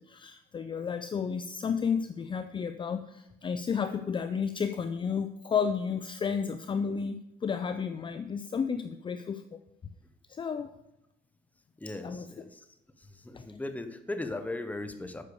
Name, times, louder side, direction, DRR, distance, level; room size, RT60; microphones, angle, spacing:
voice 1, 0.0-9.4 10.3-10.7 12.0-12.3 13.3-13.5, left 6 dB, 30° left, 10 dB, 0.5 m, -32 dB
voice 2, 11.8-12.6 13.0-15.2, left 2 dB, 10° left, 8 dB, 1.0 m, -38 dB
8.4 x 6.7 x 6.8 m, 0.87 s
cardioid pair, 110°, 17 cm